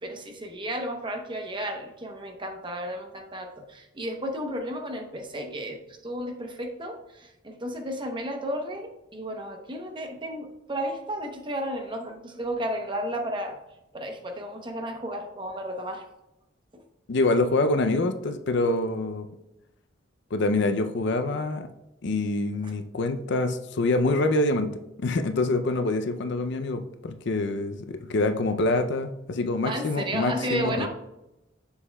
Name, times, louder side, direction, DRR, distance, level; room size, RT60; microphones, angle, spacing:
voice 1, 0.0-13.6 13.9-16.0 16.7-16.8 29.6-30.9, right 1 dB, 25° right, 4 dB, 0.8 m, -33 dB
voice 2, 17.1-19.3 20.3-21.7 22.0-30.9, left 2 dB, 65° left, 8 dB, 0.5 m, -26 dB
6.9 x 6.8 x 2.3 m, 0.91 s
head